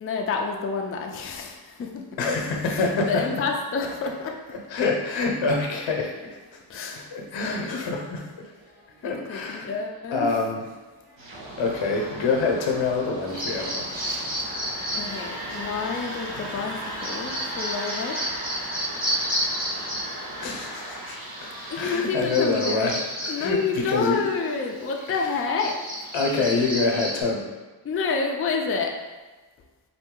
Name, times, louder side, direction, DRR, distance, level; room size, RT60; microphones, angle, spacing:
voice 1, 0.0-2.2 2.7-4.3 6.7-7.1 7.4-7.9 9.0-10.4 15.0-18.2 21.7-22.9 23.3-25.8 27.8-28.9, left 4 dB, 30° left, 2 dB, 0.4 m, -29 dB
voice 2, 2.2-3.3 4.0-4.1 4.5-6.3 6.9-8.4 9.0-9.7 10.1-10.6 11.6-13.9 16.3-16.7 20.4-21.2 21.4-21.5 21.8-24.3 25.1-25.3 26.1-27.5, left 3 dB, 90° left, 1 dB, 0.8 m, -26 dB
sound 1, 3.1-22.0, equal, 50° right, 1.4 m, -41 dB
sound 2, 11.2-23.0, right 1 dB, 90° right, 1.1 m, -41 dB
Bird vocalization bird call bird song, 13.3-27.2, equal, 20° right, 1.2 m, -33 dB
4.1 x 2.7 x 3.7 m, 1.2 s
wide cardioid pair, 130°, 44 cm